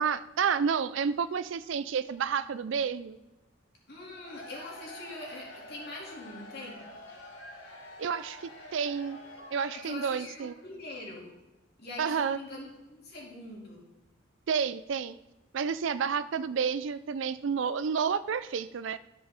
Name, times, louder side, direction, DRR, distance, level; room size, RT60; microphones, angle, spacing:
voice 1, 0.0-3.2 8.0-9.2 9.5-10.5 12.0-12.4 14.5-15.2 15.5-19.0, right 6 dB, 65° right, 14 dB, 0.4 m, -30 dB
voice 2, 3.9-6.8 9.7-11.3 11.8-13.8, left 2 dB, 50° left, -3 dB, 2.8 m, -43 dB
Cheering / Crowd, 4.0-10.7, left 1 dB, 70° left, 1.7 m, -48 dB
13.0 x 5.4 x 4.4 m, 1.0 s
head